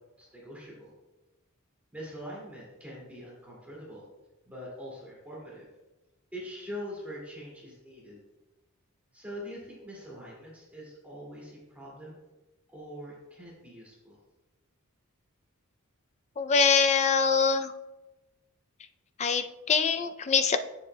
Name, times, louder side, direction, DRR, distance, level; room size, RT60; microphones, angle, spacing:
voice 1, 0.2-0.9 1.9-4.0 4.5-5.7 6.3-8.2 9.1-12.2 12.7-14.2, equal, 5° right, -5 dB, 2.3 m, -43 dB
voice 2, 16.4-17.7 19.2-20.6, left 5 dB, 30° left, 9 dB, 0.4 m, -24 dB
9.7 x 6.9 x 2.2 m, 1.0 s
head